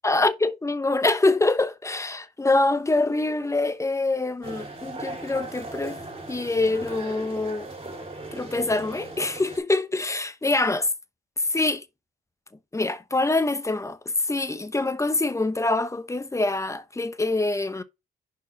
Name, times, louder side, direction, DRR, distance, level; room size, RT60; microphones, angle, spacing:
voice 1, 0.0-6.0 6.3-7.7 8.3-10.9 11.5-11.8 12.7-14.0 14.3-17.8, left 2 dB, 15° left, 0.9 m, -25 dB
sound 1, 4.4-9.6, right 2 dB, 30° right, 4.7 m, -38 dB
5.4 x 4.7 x 5.7 m
cardioid pair, 90°, 20 cm